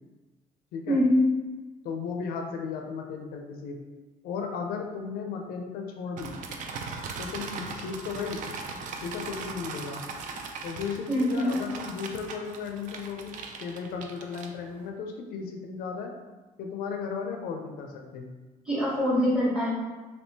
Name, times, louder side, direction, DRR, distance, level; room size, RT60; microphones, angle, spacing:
voice 1, 0.9-1.3 11.1-11.6 18.6-19.7, left 1 dB, 5° right, -7 dB, 1.0 m, -23 dB
voice 2, 1.8-3.8 4.2-6.3 7.2-8.4 9.0-10.0 10.6-13.3 13.6-16.1 16.6-18.3, left 5 dB, 80° left, 3 dB, 0.4 m, -35 dB
sound 1, 6.2-14.9, right 4 dB, 60° right, 0.4 m, -39 dB
3.5 x 2.7 x 2.7 m, 1.3 s
cardioid pair, 160°, 15 cm